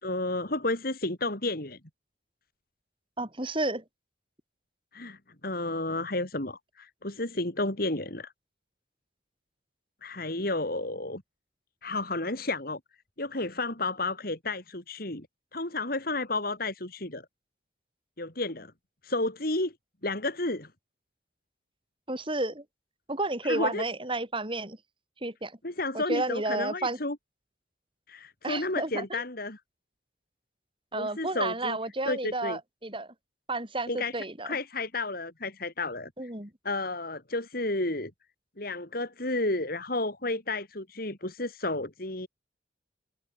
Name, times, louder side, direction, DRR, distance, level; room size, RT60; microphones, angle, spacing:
voice 1, 0.0-1.8 4.9-8.3 10.0-11.2 11.8-12.8 13.2-15.3 15.5-17.3 18.2-18.7 19.0-19.7 20.0-20.7 23.4-23.8 25.6-27.2 28.1-29.6 30.9-31.8 32.1-32.6 33.9-34.1 34.4-36.1 36.6-38.1 38.6-42.3, left 2 dB, 55° left, 3.9 m, -31 dB
voice 2, 3.2-3.8 22.1-22.6 23.1-24.8 25.2-25.5 25.9-27.0 28.4-29.2 30.9-33.1 33.5-34.6 36.2-36.5, right 2 dB, 30° right, 5.2 m, -31 dB
head